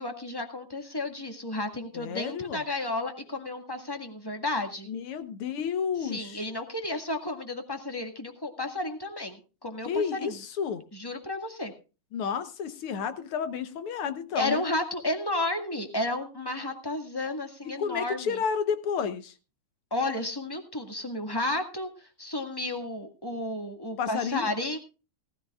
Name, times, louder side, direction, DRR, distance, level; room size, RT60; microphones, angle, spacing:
voice 1, 0.0-4.9 6.0-10.4 10.9-11.7 14.3-18.4 19.9-24.8, left 2 dB, 10° left, 5 dB, 1.1 m, -32 dB
voice 2, 1.9-2.6 4.9-6.4 9.9-10.8 12.1-14.6 17.6-19.3 24.0-24.5, left 7 dB, 65° left, 11 dB, 1.5 m, -31 dB
18.5 x 14.0 x 2.4 m, 0.33 s
omnidirectional pair, 3.4 m